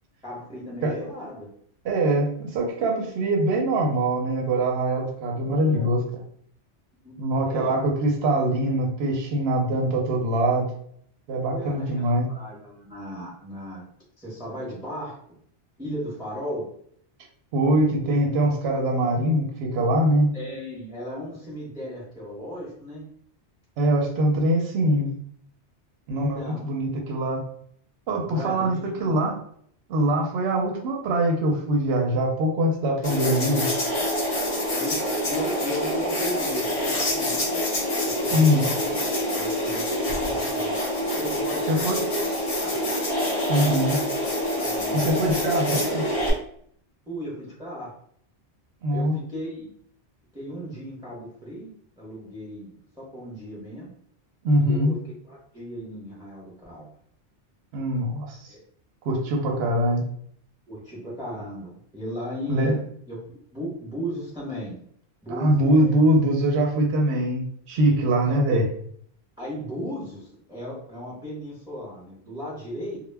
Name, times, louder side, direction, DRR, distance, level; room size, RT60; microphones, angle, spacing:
voice 1, 0.2-1.5 5.4-5.9 7.0-7.2 7.4-7.7 11.3-13.8 14.2-15.2 15.8-16.7 20.3-23.1 26.1-26.7 28.2-29.3 34.7-37.6 38.2-40.8 41.2-42.8 44.5-45.0 47.1-47.9 48.9-49.7 50.3-51.7 52.0-53.9 54.6-55.0 55.2-56.9 58.5-58.6 59.6-60.0 60.7-62.7 63.1-64.8 65.2-66.0 68.3-68.6 69.4-73.0, equal, 5° right, -6 dB, 0.6 m, -36 dB
voice 2, 1.8-6.2 7.2-10.7 11.3-12.3 17.5-20.3 23.8-25.1 26.1-27.4 28.1-29.4 29.9-33.7 38.3-38.7 41.7-42.0 43.5-44.0 44.9-46.1 48.8-49.2 54.4-54.9 57.7-58.4 59.0-60.0 62.5-62.8 65.3-68.7, right 1 dB, 65° right, 0 dB, 0.8 m, -23 dB
sound 1, 33.0-46.3, left 1 dB, 40° left, 0.6 m, -26 dB
2.1 x 2.1 x 3.3 m, 0.64 s
omnidirectional pair, 1.2 m